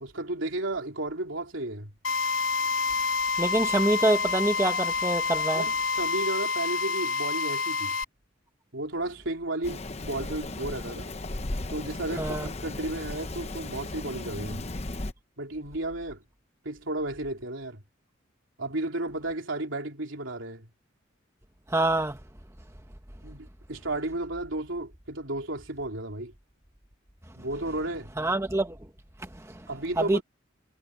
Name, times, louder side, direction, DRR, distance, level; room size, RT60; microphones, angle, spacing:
voice 1, 0.0-1.9 5.5-7.9 8.7-11.1 11.7-14.6 15.4-16.2 16.6-17.8 18.6-20.7 23.2-26.3 27.3-28.1 29.7-30.2, right 2 dB, 75° right, 3.4 m, -33 dB
Drill, 2.0-8.0, left 4 dB, 85° left, 3.1 m, -28 dB
voice 2, 3.4-5.6 12.2-12.5 21.7-22.2 28.2-28.8 30.0-30.2, right 1 dB, 15° right, 1.2 m, -25 dB
Rain, 9.6-15.1, left 2 dB, 35° left, 0.9 m, -36 dB
head